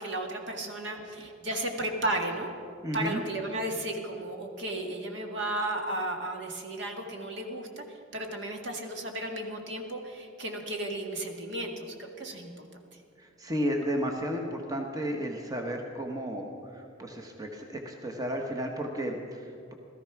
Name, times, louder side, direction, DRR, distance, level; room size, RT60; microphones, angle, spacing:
voice 1, 0.0-2.5 2.9-12.7, right 1 dB, 60° right, 2 dB, 1.9 m, -34 dB
voice 2, 2.8-3.2 13.2-19.7, equal, 20° right, 2 dB, 1.1 m, -33 dB
17.5 x 14.0 x 5.9 m, 2.5 s
head